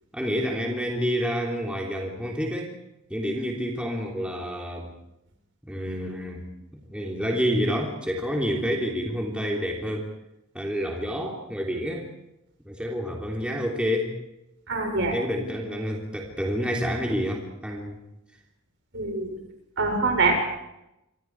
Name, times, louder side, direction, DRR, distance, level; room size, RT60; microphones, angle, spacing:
voice 1, 0.1-2.7 3.1-4.9 5.7-10.1 10.5-12.1 12.6-14.1 15.1-18.0, equal, 5° right, -1 dB, 3.3 m, -28 dB
voice 2, 14.7-15.1 18.9-19.4 19.8-20.3, right 3 dB, 55° right, 3 dB, 6.5 m, -24 dB
28.5 x 24.5 x 4.8 m, 0.88 s
head